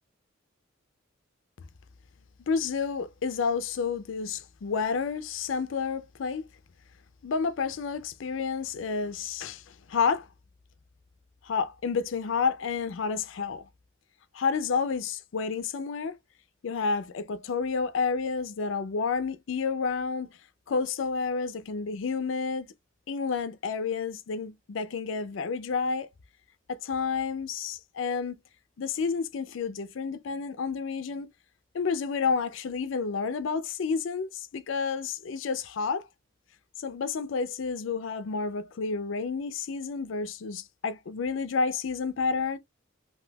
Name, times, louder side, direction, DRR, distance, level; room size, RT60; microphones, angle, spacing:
voice 1, 2.5-6.4 7.2-10.3 11.4-13.6 14.3-16.2 16.6-20.3 20.7-22.7 23.1-26.1 26.7-28.4 28.8-31.3 31.7-36.1 36.8-42.6, left 5 dB, 75° left, 0.4 m, -30 dB
3.5 x 2.6 x 2.2 m
head